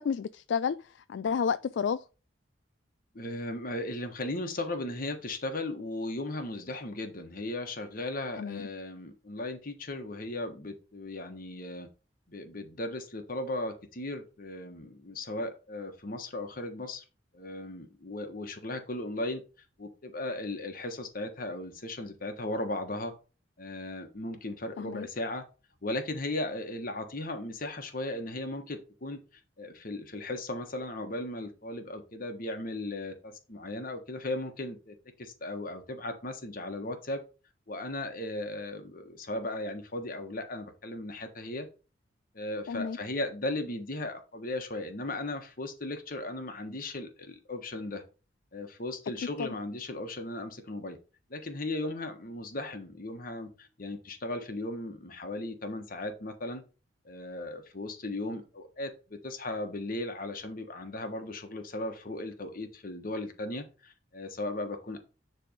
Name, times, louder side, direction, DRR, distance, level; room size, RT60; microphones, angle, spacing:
voice 1, 0.0-0.8 1.1-2.0 8.4-8.7 24.8-25.1 42.7-43.0 49.4-49.5, left 6 dB, 65° left, 0.3 m, -30 dB
voice 2, 3.1-11.9 12.3-17.0 17.3-19.4 19.8-23.1 23.6-25.4 25.8-29.2 29.6-37.2 37.7-41.7 42.3-48.0 48.5-51.0 51.3-56.6 57.0-65.0, left 2 dB, 50° left, 1.3 m, -36 dB
10.0 x 3.4 x 5.1 m
head